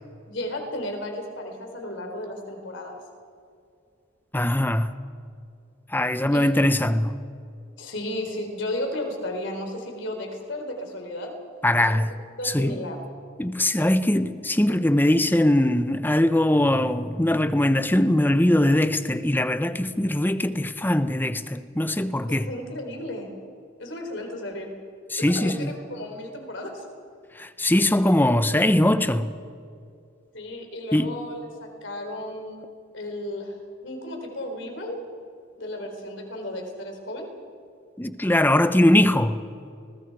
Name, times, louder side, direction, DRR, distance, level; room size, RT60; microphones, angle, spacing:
voice 1, 0.3-3.0 6.3-6.5 7.8-11.3 11.9-12.0 12.4-13.0 22.3-23.3 23.8-24.7 25.2-26.8 30.3-32.6 32.9-33.6 33.8-35.0 35.6-37.3, left 1 dB, 65° left, 3.9 m, -34 dB
voice 2, 4.3-4.9 5.9-7.2 11.6-12.1 12.4-12.8 13.4-22.5 25.1-25.7 27.4-29.3 30.9-31.1 38.0-39.4, left 1 dB, 10° left, 0.8 m, -21 dB
30.0 x 20.5 x 4.8 m
head